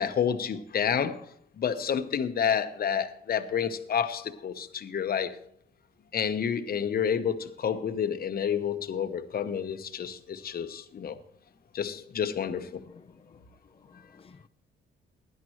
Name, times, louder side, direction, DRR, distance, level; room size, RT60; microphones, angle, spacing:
voice 1, 0.0-5.4 6.1-11.2 11.7-12.8, left 8 dB, 50° left, 1.0 m, -29 dB
voice 2, 12.9-13.4 13.7-14.5, left 5 dB, 30° left, 0.7 m, -55 dB
16.5 x 10.5 x 3.1 m
cardioid pair, 90°, 20 cm